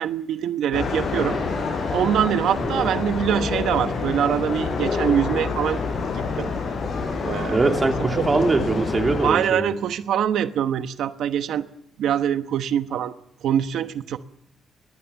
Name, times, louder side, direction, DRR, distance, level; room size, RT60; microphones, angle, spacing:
voice 1, 0.0-1.4 1.9-5.8 6.1-6.5 7.2-7.7 8.2-8.4 9.2-11.7 12.0-13.1 13.4-14.2, right 9 dB, 85° right, 10 dB, 1.0 m, -24 dB
sound 1, 0.7-9.3, left 4 dB, 50° left, 5.9 m, -27 dB
voice 2, 7.5-9.7, right 3 dB, 25° right, 3 dB, 3.2 m, -22 dB
23.5 x 20.5 x 7.1 m, 0.82 s
cardioid pair, 135°, 0 cm